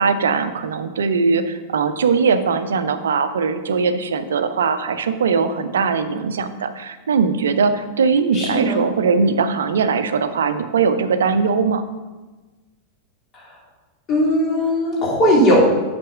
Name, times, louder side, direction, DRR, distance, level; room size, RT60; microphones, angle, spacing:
voice 1, 0.0-11.8, right 5 dB, 65° right, 10 dB, 0.7 m, -20 dB
voice 2, 8.3-8.9 13.3-13.4 14.1-15.6, equal, 30° left, -3 dB, 3.1 m, -18 dB
7.7 x 6.1 x 5.8 m, 1.2 s
figure-of-eight pair, 90°, 0 cm